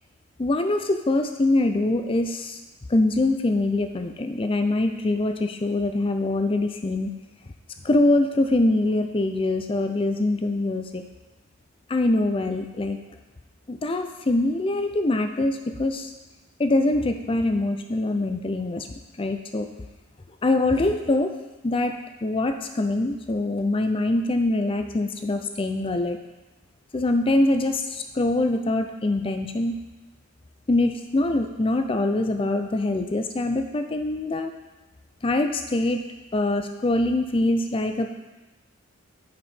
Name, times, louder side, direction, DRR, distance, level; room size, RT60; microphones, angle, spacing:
voice 1, 0.4-2.6 2.9-7.1 7.8-11.0 11.9-13.0 13.7-16.1 16.6-18.9 19.2-19.7 20.4-21.3 21.6-26.2 26.9-29.8 30.7-34.5 35.2-36.0 36.3-38.2, left 2 dB, 25° left, 6 dB, 0.4 m, -24 dB
6.2 x 4.8 x 4.3 m, 1.1 s
head